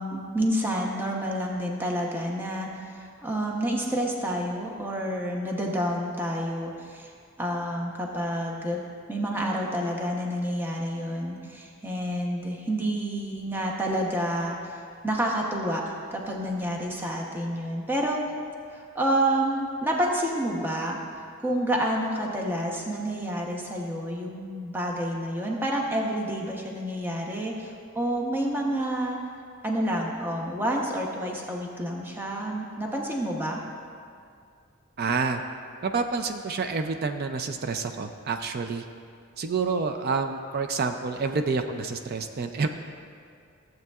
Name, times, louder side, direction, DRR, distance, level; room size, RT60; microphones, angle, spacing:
voice 1, 0.0-2.7 2.9-7.1 7.4-8.8 9.1-14.7 15.0-18.2 18.7-21.0 21.4-29.2 29.6-33.6, right 1 dB, 10° right, -1 dB, 0.8 m, -29 dB
voice 2, 35.0-35.4 35.8-38.8 39.4-42.7, right 4 dB, 45° right, 6 dB, 0.4 m, -28 dB
15.0 x 7.8 x 2.4 m, 2.2 s
head